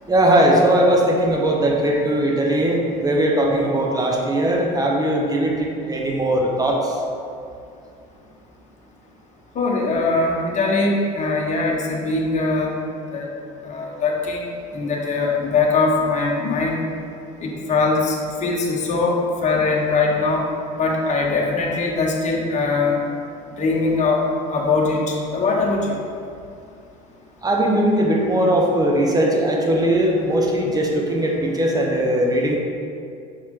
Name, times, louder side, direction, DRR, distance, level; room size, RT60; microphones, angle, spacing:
voice 1, 0.1-7.0 27.4-32.6, right 1 dB, 20° right, 0 dB, 1.2 m, -19 dB
voice 2, 9.5-12.7 13.1-13.3 13.6-14.4 14.7-16.8 17.4-18.1 18.4-20.4 20.8-23.0 23.6-24.2 24.5-25.8, left 3 dB, 35° left, -2 dB, 1.2 m, -21 dB
6.4 x 4.6 x 3.8 m, 2.4 s
hypercardioid pair, 80°, 21 cm